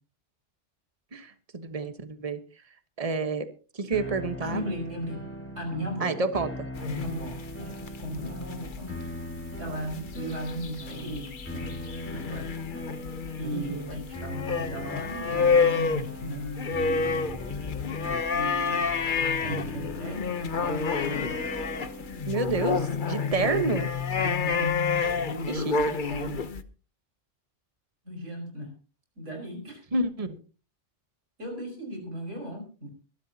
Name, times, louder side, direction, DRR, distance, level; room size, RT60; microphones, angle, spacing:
voice 1, 1.1-2.4 3.0-3.5 3.7-4.6 6.0-6.7 13.5-13.9 22.3-23.9 25.5-25.9 29.9-30.4, right 3 dB, 30° right, 9 dB, 1.3 m, -29 dB
sound 1, 3.9-23.2, equal, 10° left, 2.7 m, -41 dB
voice 2, 4.4-5.2 5.6-6.2 6.8-9.0 9.6-11.7 12.0-12.5 13.4-17.3 18.3-18.9 19.4-21.3 22.5-23.0 24.1-24.8 25.2-26.4 28.0-28.7 29.2-29.8 31.4-32.9, equal, 85° right, 3 dB, 5.7 m, -36 dB
sound 2, 6.7-26.6, left 5 dB, 45° left, 1.0 m, -29 dB
23.5 x 12.5 x 2.9 m, 0.35 s
omnidirectional pair, 1.2 m